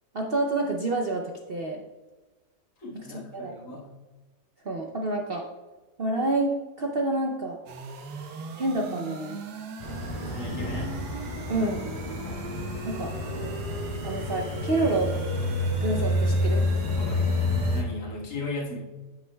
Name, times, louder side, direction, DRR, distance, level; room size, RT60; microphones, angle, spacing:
voice 1, 0.1-1.8 3.1-3.5 4.6-5.4 6.0-7.6 8.6-9.4 11.5-11.8 12.8-13.1 14.0-15.1 15.8-16.6, right 2 dB, 50° right, 1 dB, 0.7 m, -28 dB
voice 2, 2.8-3.9 10.3-10.9 16.9-18.8, left 2 dB, 70° left, -4 dB, 2.1 m, -37 dB
sound 1, 7.7-17.8, right 4 dB, 80° right, 1.4 m, -40 dB
sound 2, 9.8-17.8, left 1 dB, 30° left, 1.8 m, -29 dB
9.5 x 8.3 x 2.3 m, 1.2 s
omnidirectional pair, 1.8 m